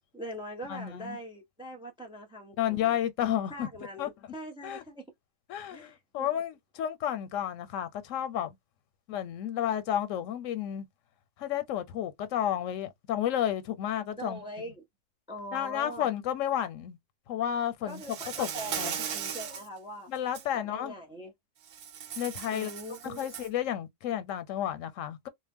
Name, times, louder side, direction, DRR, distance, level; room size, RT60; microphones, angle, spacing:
voice 1, 0.1-3.0 3.5-5.0 5.7-6.3 14.2-14.8 15.3-16.1 17.9-20.1 20.5-21.3 22.5-23.3, equal, 5° right, 0.4 m, -42 dB
voice 2, 0.7-1.2 2.6-3.7 4.0-4.1 4.6-4.8 5.5-8.6 9.1-10.9 11.4-14.4 15.5-17.0 17.3-18.0 18.4-18.5 18.8-19.0 20.1-20.9 22.2-22.7 23.0-25.3, left 10 dB, 85° left, 1.0 m, -31 dB
Insect, 17.9-19.7 20.2-20.4 21.7-23.6, right 8 dB, 65° right, 0.8 m, -37 dB
2.3 x 2.1 x 3.4 m
omnidirectional pair, 1.3 m